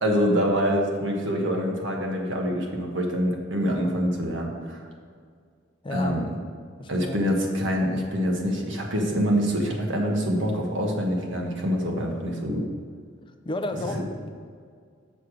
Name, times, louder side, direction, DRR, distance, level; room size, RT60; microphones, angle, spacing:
voice 1, 0.0-4.8 5.9-6.2 6.9-12.6 13.9-14.0, equal, 65° right, 1 dB, 1.3 m, -25 dB
voice 2, 5.8-6.2 6.8-7.2 13.4-14.3, left 2 dB, 25° left, 7 dB, 0.5 m, -32 dB
6.8 x 6.3 x 5.0 m, 2.1 s
head